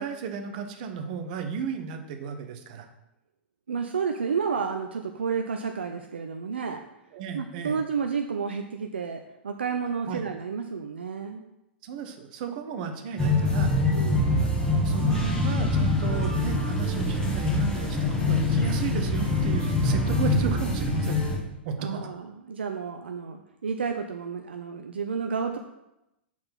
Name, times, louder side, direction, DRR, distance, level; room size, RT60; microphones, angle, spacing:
voice 1, 0.0-2.9 7.1-7.8 10.1-10.2 11.8-13.7 14.4-21.3 21.6-22.0, right 6 dB, 50° right, 6 dB, 0.9 m, -34 dB
voice 2, 3.7-6.8 7.3-11.4 13.9-14.4 21.8-25.6, right 6 dB, 70° right, 5 dB, 0.5 m, -31 dB
sound 1, 13.2-21.4, left 2 dB, 15° left, 1.6 m, -24 dB
5.8 x 4.3 x 5.8 m, 0.90 s
figure-of-eight pair, 100°, 6 cm